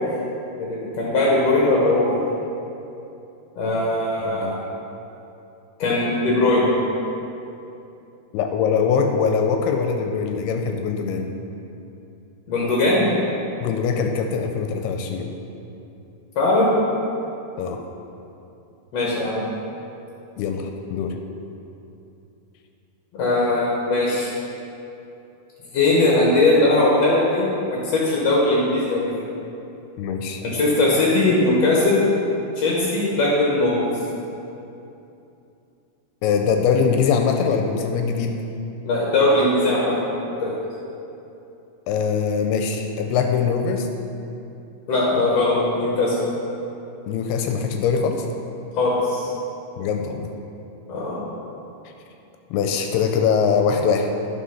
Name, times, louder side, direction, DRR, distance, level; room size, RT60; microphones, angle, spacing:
voice 1, 0.6-2.0 3.5-4.5 5.8-6.7 12.5-13.1 16.3-16.9 18.9-19.4 23.1-24.3 25.7-29.1 30.4-32.1 32.6-33.8 38.8-39.9 40.4-40.5 44.9-46.2 48.7-49.3 50.9-51.2, left 2 dB, 65° left, -5 dB, 1.6 m, -19 dB
voice 2, 4.2-4.6 8.3-11.3 13.6-15.3 17.6-17.8 20.4-21.2 30.0-30.4 36.2-38.4 41.9-43.9 47.1-48.3 49.8-50.3 52.5-54.1, left 6 dB, 85° left, 4 dB, 2.5 m, -22 dB
10.0 x 5.9 x 5.6 m, 2.8 s
omnidirectional pair, 4.7 m